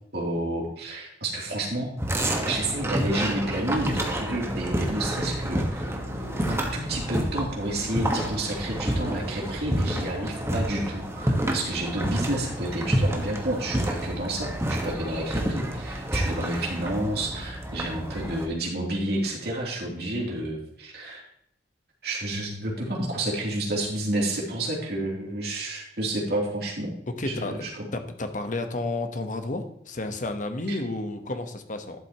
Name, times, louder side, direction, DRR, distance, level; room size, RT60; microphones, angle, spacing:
voice 1, 0.1-5.8 6.5-21.2 22.0-26.9 27.2-27.9 30.7-30.8, right 1 dB, 65° right, -3 dB, 3.1 m, -30 dB
sound 1, 2.0-18.5, right 1 dB, 15° right, 1.4 m, -29 dB
sound 2, 6.2-15.1 16.0-17.0, equal, 30° right, 2.1 m, -47 dB
voice 2, 27.1-27.7 27.9-32.0, left 2 dB, 50° left, 7 dB, 1.1 m, -31 dB
12.0 x 7.7 x 3.0 m, 0.75 s
head